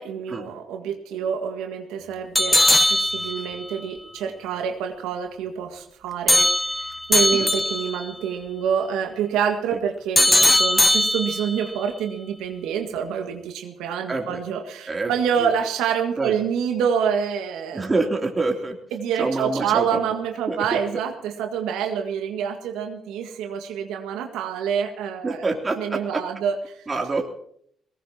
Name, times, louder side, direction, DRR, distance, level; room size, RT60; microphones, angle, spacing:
voice 1, 0.0-2.6 2.9-17.9 18.9-25.5 25.8-26.8, right 7 dB, 80° right, 4 dB, 1.7 m, -27 dB
sound 1, 2.4-3.7 6.3-8.0 10.2-11.7, left 1 dB, 15° left, 0.7 m, -19 dB
voice 2, 14.1-14.4 14.9-15.1 15.4-15.5 16.2-16.3 17.7-18.8 19.2-20.0 20.5-21.0 25.2-26.2 26.9-27.3, right 3 dB, 35° right, 2 dB, 3.1 m, -26 dB
22.0 x 19.5 x 2.9 m, 0.66 s
hypercardioid pair, 50°, 0 cm